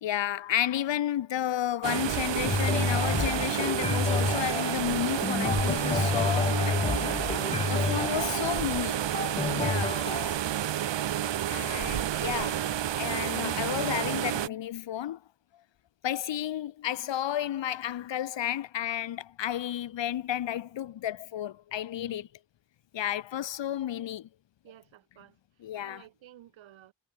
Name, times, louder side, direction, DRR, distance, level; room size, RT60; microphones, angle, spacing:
voice 1, 0.0-7.2 7.7-9.0 9.5-10.1 11.5-15.2 16.0-22.3 22.9-24.3 25.6-26.0, left 11 dB, 70° left, 1.6 m, -32 dB
sound 1, 1.8-14.5, right 11 dB, 70° right, 1.8 m, -30 dB
sound 2, 2.4-10.4, left 4 dB, 15° left, 0.3 m, -30 dB
voice 2, 7.6-7.9 8.9-9.3 22.0-22.3 24.6-26.9, right 12 dB, 90° right, 6.2 m, -53 dB
cardioid pair, 75°, 45 cm